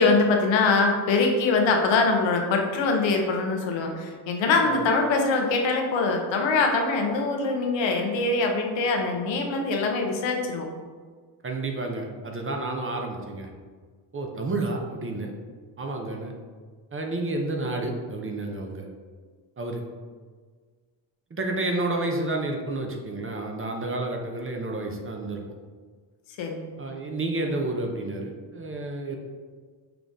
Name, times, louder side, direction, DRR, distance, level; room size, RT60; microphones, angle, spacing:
voice 1, 0.0-10.7 26.4-26.7, left 3 dB, 70° left, 2 dB, 0.9 m, -23 dB
voice 2, 11.4-13.5 14.1-15.3 15.8-16.3 16.9-18.9 19.6-19.8 21.3-25.4 26.8-29.2, right 2 dB, 25° right, 2 dB, 0.8 m, -30 dB
6.0 x 2.5 x 3.5 m, 1.5 s
supercardioid pair, 70°, 47 cm